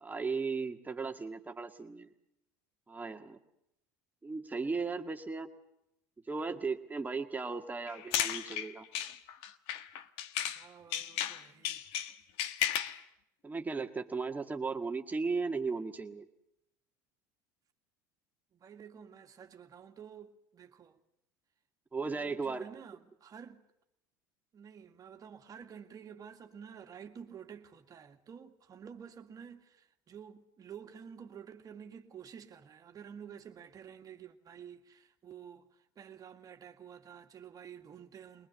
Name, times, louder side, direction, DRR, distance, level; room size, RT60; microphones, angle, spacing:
voice 1, 0.0-2.1 2.9-3.4 4.2-5.5 6.3-8.9 13.4-16.3 21.9-22.7, right 4 dB, 15° right, 1.8 m, -36 dB
sound 1, 7.9-10.6 10.9-13.0, left 10 dB, 65° left, 1.4 m, -34 dB
voice 2, 10.4-12.0 18.5-21.0 22.0-23.6 24.5-38.5, right 7 dB, 35° right, 2.1 m, -50 dB
22.5 x 20.0 x 8.1 m
hypercardioid pair, 90°, 10 cm